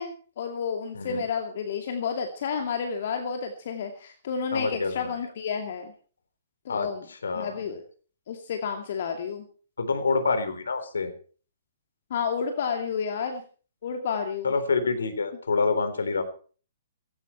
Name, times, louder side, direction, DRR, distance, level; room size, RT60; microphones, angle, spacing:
voice 1, 0.0-5.9 6.6-7.0 7.3-7.8 8.3-9.5 12.1-13.4 13.8-14.5, left 6 dB, 50° left, 4 dB, 2.5 m, -31 dB
voice 2, 4.5-5.1 6.7-7.7 9.8-11.1 14.4-16.2, left 4 dB, 70° left, 10 dB, 3.8 m, -27 dB
18.0 x 17.0 x 4.6 m, 0.41 s
figure-of-eight pair, 120°, 0 cm